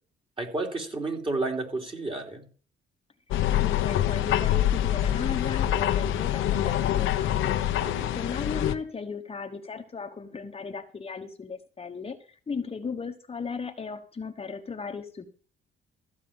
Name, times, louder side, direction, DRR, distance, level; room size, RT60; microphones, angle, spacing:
voice 1, 0.4-2.4 7.8-8.1, right 2 dB, 25° right, 1 dB, 3.2 m, -31 dB
sound 1, 3.3-8.7, left 12 dB, 85° left, 0.9 m, -25 dB
voice 2, 3.5-7.6 8.1-15.3, left 5 dB, 30° left, 4 dB, 1.2 m, -36 dB
14.5 x 4.9 x 8.8 m, 0.41 s
cardioid pair, 90°, 20 cm